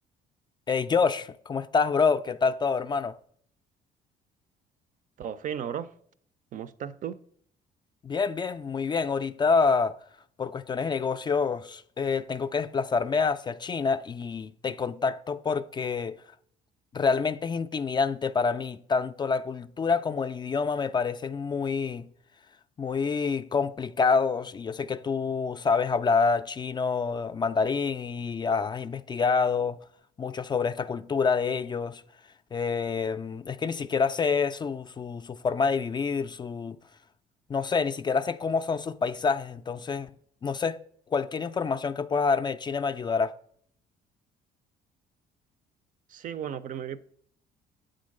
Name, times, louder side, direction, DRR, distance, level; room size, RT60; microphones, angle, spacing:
voice 1, 0.7-3.2 8.0-10.0 10.4-16.2 16.9-22.1 22.8-29.8 30.2-32.0 32.5-36.8 37.5-40.1 40.4-40.8 41.1-43.3, left 5 dB, 25° left, 0.3 m, -27 dB
voice 2, 5.2-5.9 6.5-7.2 46.1-47.0, right 9 dB, 50° right, 0.5 m, -35 dB
8.0 x 3.8 x 6.4 m
cardioid pair, 110°, 17 cm